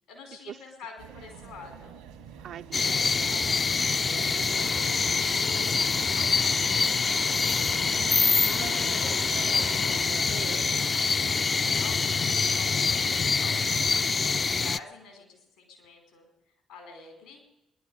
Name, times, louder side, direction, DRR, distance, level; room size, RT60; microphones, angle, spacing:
voice 1, 0.1-2.0 2.3-2.4 2.8-3.3 3.9-4.7 5.4-9.1 10.2-13.1 13.4-16.3 16.7-17.4, left 4 dB, 80° left, 1 dB, 4.6 m, -48 dB
sound 1, 1.0-10.3, right 7 dB, 80° right, 1.3 m, -47 dB
voice 2, 2.4-2.9 8.5-10.6, right 10 dB, 65° right, 10 dB, 0.4 m, -43 dB
sound 2, 2.7-14.8, left 4 dB, 40° left, 0.4 m, -25 dB
sound 3, 4.5-10.0, left 5 dB, 60° left, 0.9 m, -43 dB
20.5 x 11.0 x 5.5 m, 0.95 s
hypercardioid pair, 45°, 0 cm